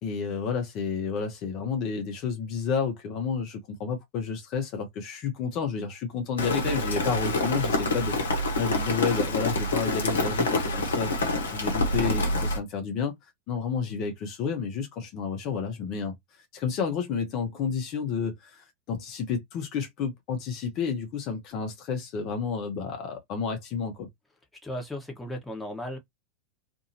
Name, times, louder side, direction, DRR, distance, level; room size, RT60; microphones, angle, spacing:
voice 1, 0.0-13.1 13.5-24.1, left 6 dB, 45° left, 0.9 m, -31 dB
Rain, 6.4-12.6, left 2 dB, 75° left, 0.9 m, -27 dB
voice 2, 24.6-26.0, left 1 dB, 10° left, 1.1 m, -35 dB
2.6 x 2.6 x 2.7 m
figure-of-eight pair, 90°, 0 cm